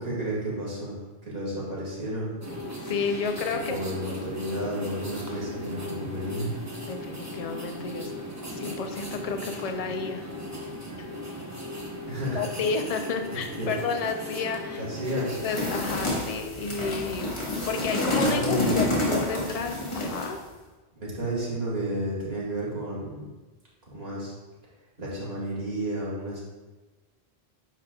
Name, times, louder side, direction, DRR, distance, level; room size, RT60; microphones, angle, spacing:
voice 1, 0.0-2.4 3.5-6.5 12.1-12.4 13.6-13.7 14.8-15.3 18.2-19.0 20.9-23.2 23.9-24.3 25.0-26.4, right 1 dB, 70° right, -6 dB, 2.5 m, -32 dB
sound 1, 2.4-16.1, left 1 dB, 15° right, 0.9 m, -37 dB
voice 2, 2.8-3.8 6.8-8.1 8.5-10.2 12.3-14.8 15.4-20.4, left 4 dB, 45° left, 5 dB, 0.6 m, -31 dB
sound 2, 15.3-20.4, left 2 dB, 30° left, 1.4 m, -28 dB
9.2 x 5.1 x 2.3 m, 1.2 s
omnidirectional pair, 1.0 m